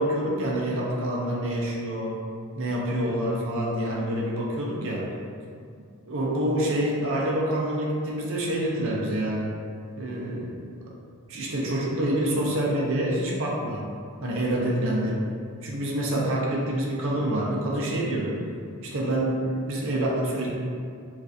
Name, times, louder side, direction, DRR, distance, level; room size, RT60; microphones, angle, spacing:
voice 1, 0.0-2.2 2.6-5.1 6.1-9.5 10.0-10.9 11.3-13.9 14.2-15.2 15.6-18.4 18.8-20.5, right 1 dB, 60° right, -3 dB, 0.5 m, -27 dB
3.1 x 2.5 x 2.5 m, 2.3 s
head